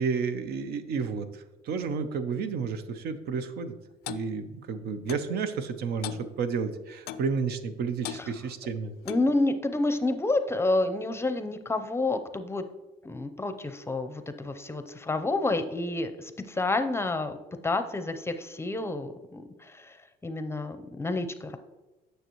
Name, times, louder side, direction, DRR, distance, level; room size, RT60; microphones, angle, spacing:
voice 1, 0.0-3.8 4.1-8.9, right 5 dB, 70° right, 9 dB, 0.7 m, -31 dB
Clock, 4.1-4.3 5.1-5.3 6.0-6.3 7.1-7.3 8.0-8.2 9.1-9.3, left 11 dB, 75° left, 0.4 m, -37 dB
voice 2, 9.1-12.6 13.0-17.4 17.6-19.9 20.2-21.6, left 2 dB, 15° left, 9 dB, 0.6 m, -29 dB
9.4 x 6.6 x 3.0 m, 1.1 s
cardioid pair, 110°, 17 cm